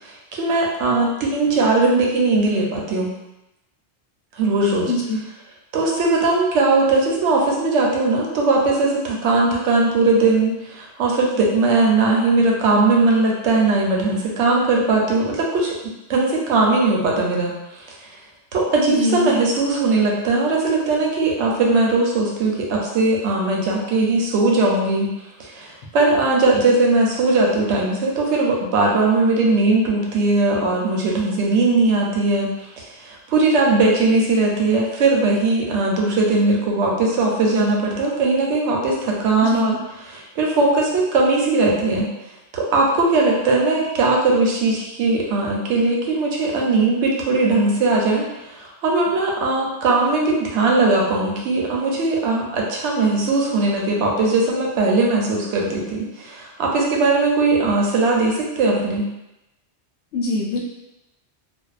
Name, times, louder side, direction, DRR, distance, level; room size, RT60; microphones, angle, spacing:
voice 1, 0.0-3.1 4.4-4.9 5.7-15.8 16.1-18.1 18.5-25.1 25.4-39.8 40.0-42.1 42.5-59.1, right 3 dB, 90° right, -1 dB, 0.9 m, -19 dB
voice 2, 4.9-5.2 18.8-19.4 39.4-39.8 60.1-60.6, left 2 dB, 80° left, -2 dB, 0.9 m, -23 dB
2.5 x 2.2 x 2.4 m, 0.92 s
omnidirectional pair, 1.1 m